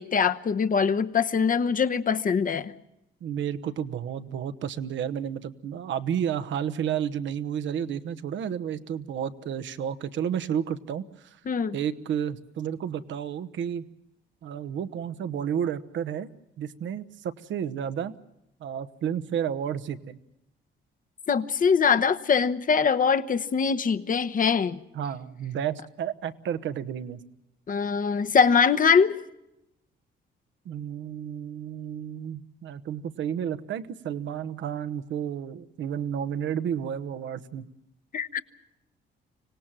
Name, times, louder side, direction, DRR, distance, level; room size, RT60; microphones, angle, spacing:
voice 1, 0.0-2.7 11.5-11.8 21.3-24.8 27.7-29.2 38.1-38.4, left 6 dB, 45° left, 10 dB, 1.0 m, -23 dB
voice 2, 3.2-11.4 11.7-13.8 14.4-16.3 16.6-18.1 18.6-20.2 24.9-27.2 30.6-37.6, right 9 dB, 70° right, 12 dB, 1.1 m, -31 dB
25.5 x 18.0 x 7.5 m, 0.87 s
cardioid pair, 90°, 20 cm